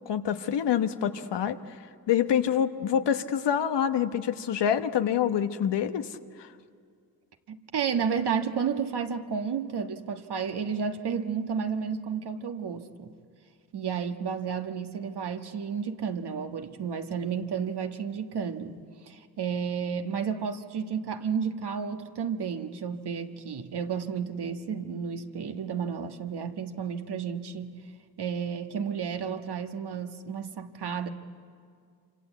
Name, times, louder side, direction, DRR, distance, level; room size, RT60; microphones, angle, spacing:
voice 1, 0.1-1.6 2.1-6.1 6.4-6.5, left 9 dB, 85° left, 9 dB, 1.1 m, -26 dB
voice 2, 7.5-13.1 13.7-18.8 19.1-27.8 28.2-31.1, right 6 dB, 70° right, 6 dB, 1.6 m, -32 dB
26.0 x 25.5 x 8.3 m, 2.2 s
cardioid pair, 50°, 41 cm